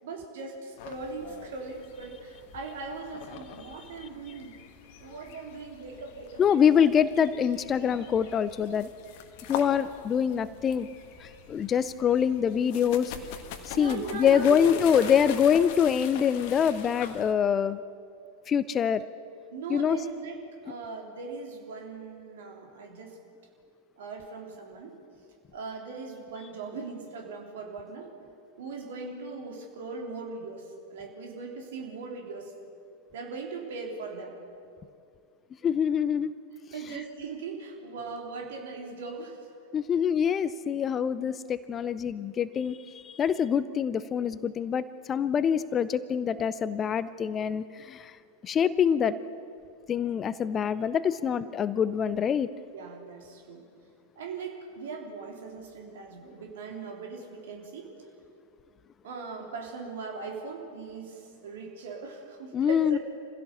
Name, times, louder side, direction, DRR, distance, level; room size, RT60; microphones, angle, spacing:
voice 1, 0.0-4.6 5.0-6.6 13.7-15.1 19.5-23.2 24.0-25.0 25.5-28.1 28.6-32.5 33.1-34.4 36.7-39.4 52.7-53.6 54.2-57.9 59.0-63.0, right 4 dB, 55° right, 1 dB, 3.5 m, -39 dB
sound 1, 0.8-17.3, left 8 dB, 45° left, 1.5 m, -43 dB
voice 2, 6.4-8.9 9.5-10.9 11.2-13.1 13.7-17.8 18.5-19.0 19.7-20.0 35.6-36.3 36.9-37.0 39.7-48.1 48.4-49.2 49.9-52.5 62.5-63.0, left 8 dB, 25° left, 16 dB, 0.6 m, -25 dB
25.5 x 16.0 x 7.1 m, 2.4 s
figure-of-eight pair, 90°, 0 cm